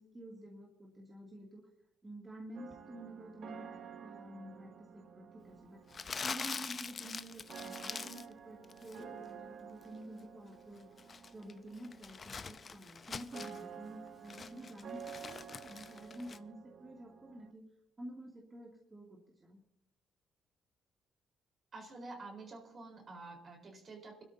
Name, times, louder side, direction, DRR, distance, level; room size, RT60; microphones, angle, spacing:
voice 1, 0.0-1.7 2.0-3.7 4.0-5.8 6.2-10.9 11.3-17.6 18.0-19.6, right 1 dB, 25° right, -2 dB, 2.6 m, -50 dB
sound 1, 2.5-17.5, right 7 dB, 60° right, 0.9 m, -52 dB
Crumpling crinkling, 5.9-8.3 8.6-9.0 10.8-13.6 14.1-16.4, left 5 dB, 40° left, 0.6 m, -44 dB
voice 2, 21.7-24.2, right 3 dB, 45° right, 2 dB, 4.2 m, -49 dB
25.5 x 12.5 x 2.8 m, 0.77 s
cardioid pair, 90°, 0 cm